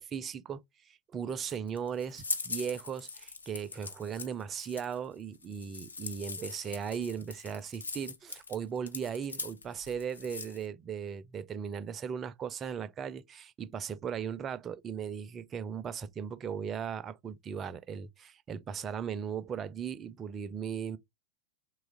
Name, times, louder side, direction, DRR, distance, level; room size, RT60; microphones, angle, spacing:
voice 1, 0.0-21.0, right 7 dB, 25° right, 0.3 m, -37 dB
sound 1, 1.3-10.7, left 4 dB, 75° left, 0.4 m, -41 dB
2.9 x 2.3 x 3.6 m
figure-of-eight pair, 90°, 0 cm